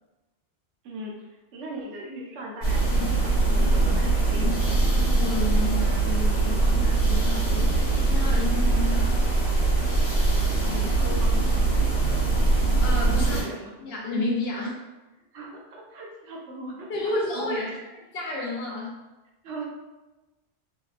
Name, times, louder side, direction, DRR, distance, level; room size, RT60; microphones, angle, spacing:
voice 1, 0.8-4.9 10.6-11.3 13.3-13.7 15.3-17.7 19.4-19.6, right 1 dB, 75° right, -2 dB, 0.9 m, -39 dB
sound 1, 2.6-13.4, right 3 dB, 40° left, 1.0 m, -22 dB
voice 2, 5.2-9.1 12.8-13.4 13.8-14.7 16.9-17.6 18.1-18.9, left 2 dB, 65° left, -2 dB, 0.8 m, -31 dB
2.7 x 2.1 x 2.3 m, 1.1 s
omnidirectional pair, 1.2 m